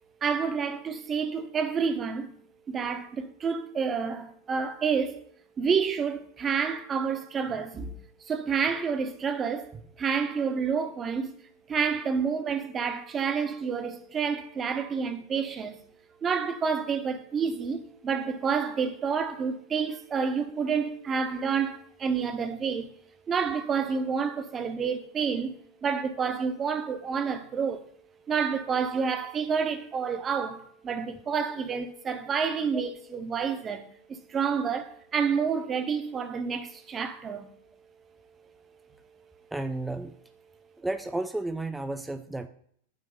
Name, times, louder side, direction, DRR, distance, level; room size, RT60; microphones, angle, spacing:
voice 1, 0.2-2.3 2.7-5.2 5.6-8.0 8.3-11.3 11.7-15.8 16.2-22.9 23.3-25.5 25.8-27.9 28.3-37.5, right 6 dB, 25° right, 0.9 m, -29 dB
voice 2, 39.5-40.1 40.8-42.5, right 2 dB, 5° right, 0.4 m, -32 dB
8.9 x 3.1 x 6.5 m
figure-of-eight pair, 90°, 0 cm